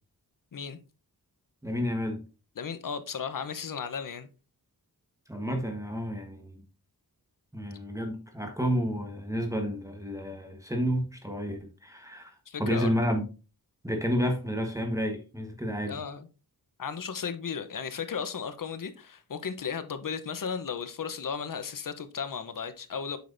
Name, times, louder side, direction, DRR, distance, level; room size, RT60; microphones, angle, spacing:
voice 1, 1.6-2.2 5.3-6.6 7.5-12.3 12.6-13.2 13.8-16.0, equal, 10° right, 1.3 m, -30 dB
voice 2, 2.6-4.3 12.5-12.9 15.9-16.3 16.8-23.2, left 6 dB, 55° left, 0.9 m, -35 dB
8.2 x 6.0 x 2.6 m
wide cardioid pair, 95°, 38 cm